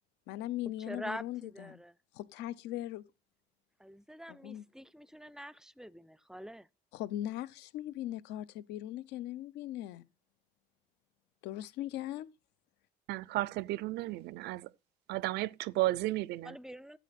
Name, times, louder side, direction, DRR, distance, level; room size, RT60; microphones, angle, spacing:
voice 1, 0.3-1.8 2.1-3.0 4.3-4.7 6.9-10.1 11.4-12.3, left 13 dB, 90° left, 0.8 m, -39 dB
voice 2, 0.9-1.9 3.8-6.7 16.4-17.0, equal, 5° right, 0.4 m, -45 dB
voice 3, 13.1-14.7 15.1-16.6, right 18 dB, 75° right, 0.4 m, -33 dB
12.5 x 8.3 x 4.2 m
cardioid pair, 110°, 17 cm